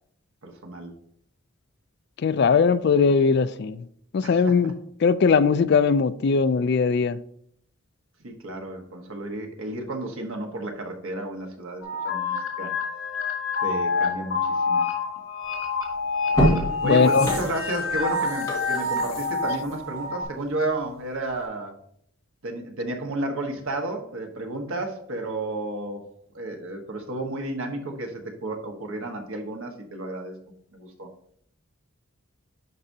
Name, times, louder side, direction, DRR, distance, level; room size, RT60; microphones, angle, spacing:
voice 1, 0.4-0.9 4.2-4.4 8.2-12.7 13.6-14.9 16.8-21.8 22.4-26.0 26.3-30.3 30.7-31.1, right 2 dB, 75° right, 1.3 m, -32 dB
voice 2, 2.2-3.8 4.1-4.7 5.0-7.2 16.8-17.3, left 5 dB, 50° left, 0.3 m, -20 dB
sound 1, 11.8-20.2, left 4 dB, 85° left, 2.2 m, -27 dB
sound 2, 15.6-15.7 16.2-20.9 21.3-21.4, equal, 15° left, 1.8 m, -28 dB
11.0 x 5.0 x 2.8 m
head